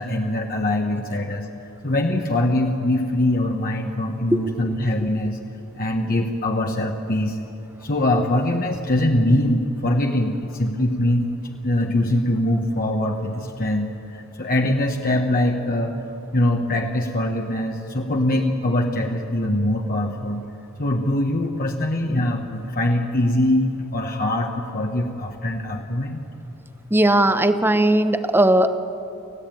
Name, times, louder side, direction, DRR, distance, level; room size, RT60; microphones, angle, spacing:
voice 1, 0.0-1.5 1.8-5.4 5.8-7.4 7.8-11.3 11.6-16.0 16.3-20.4 20.8-26.2, left 1 dB, 40° left, 2 dB, 1.3 m, -22 dB
voice 2, 26.9-28.8, right 1 dB, 10° right, 10 dB, 0.9 m, -17 dB
29.0 x 15.5 x 9.1 m, 2.9 s
head